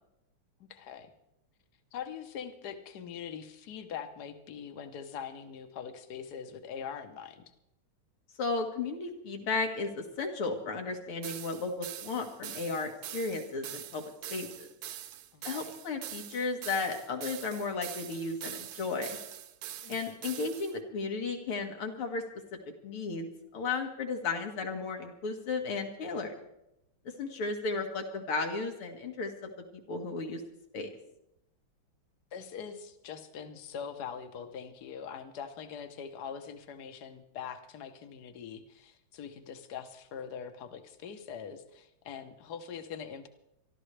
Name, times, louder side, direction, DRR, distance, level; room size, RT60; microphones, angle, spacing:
voice 1, 0.6-1.1 1.9-7.4 15.3-15.7 19.8-20.0 32.3-43.3, left 7 dB, 55° left, 8 dB, 1.5 m, -43 dB
voice 2, 8.4-14.7 15.4-19.2 19.9-22.2 22.8-26.3 27.2-29.5 29.9-30.4 30.7-30.9, left 4 dB, 80° left, 3 dB, 2.6 m, -34 dB
sound 1, 11.2-20.7, right 11 dB, 70° right, 0.9 m, -43 dB
25.5 x 12.5 x 3.3 m, 0.84 s
omnidirectional pair, 2.4 m